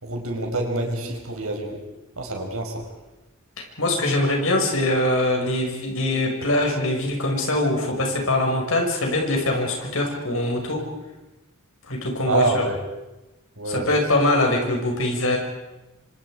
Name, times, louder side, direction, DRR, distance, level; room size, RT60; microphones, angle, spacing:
voice 1, 0.0-1.8 2.2-2.8 12.2-12.8 13.6-13.9, right 2 dB, 80° right, 2 dB, 5.5 m, -26 dB
voice 2, 3.6-10.8 11.9-12.6 13.7-15.4, left 1 dB, 70° left, 1 dB, 5.8 m, -23 dB
26.5 x 26.0 x 5.0 m, 1.0 s
head